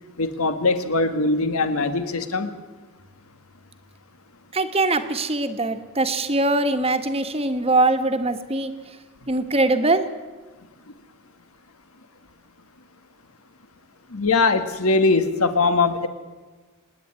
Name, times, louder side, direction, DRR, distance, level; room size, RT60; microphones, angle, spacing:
voice 1, 0.2-2.5 14.1-16.1, left 3 dB, 80° left, 10 dB, 1.6 m, -21 dB
voice 2, 4.5-8.7 9.3-10.0, right 2 dB, 25° right, 7 dB, 1.3 m, -22 dB
26.0 x 10.0 x 9.7 m, 1.3 s
head